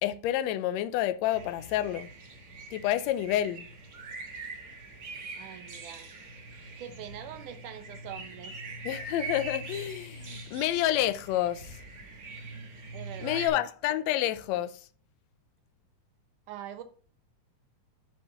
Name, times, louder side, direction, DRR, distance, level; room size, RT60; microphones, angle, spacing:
voice 1, 0.0-2.1 2.7-3.7 8.8-11.8 13.2-14.8, left 13 dB, 75° left, 1.7 m, -29 dB
sound 1, 1.3-13.5, right 3 dB, 45° right, 1.2 m, -43 dB
voice 2, 5.4-6.1 6.8-8.5 12.9-13.4 16.5-16.8, right 10 dB, 90° right, 2.4 m, -43 dB
8.2 x 5.4 x 3.9 m
omnidirectional pair, 3.5 m